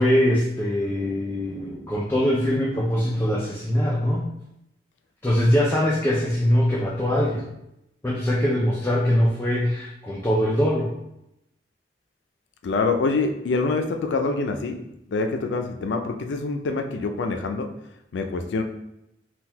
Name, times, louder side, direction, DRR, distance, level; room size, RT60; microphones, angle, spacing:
voice 1, 0.0-4.3 5.2-7.5 8.0-10.9, equal, 15° left, -4 dB, 0.3 m, -22 dB
voice 2, 12.6-17.7 18.1-18.6, left 3 dB, 85° left, 6 dB, 0.4 m, -25 dB
3.8 x 2.3 x 2.7 m, 0.84 s
head